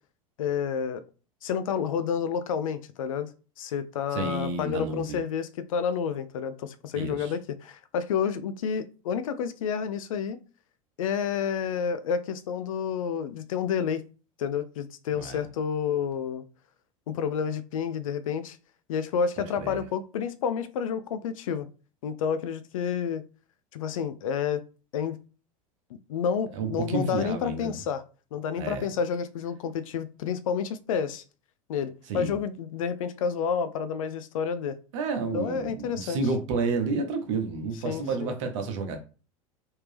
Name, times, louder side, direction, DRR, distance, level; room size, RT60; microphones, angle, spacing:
voice 1, 0.4-1.0 1.4-3.3 3.6-10.4 11.0-14.0 14.4-16.4 17.1-18.6 18.9-21.7 22.0-23.2 23.7-24.6 24.9-25.2 26.1-28.0 28.3-31.2 31.7-34.8 35.3-36.2 37.8-38.3, left 7 dB, 70° left, 0.5 m, -29 dB
voice 2, 4.1-5.2 6.9-7.3 15.2-15.4 19.6-19.8 26.5-27.8 28.6-28.9 32.1-32.3 34.9-39.0, right 4 dB, 60° right, 1.0 m, -30 dB
3.5 x 2.7 x 3.3 m
figure-of-eight pair, 85°, 18 cm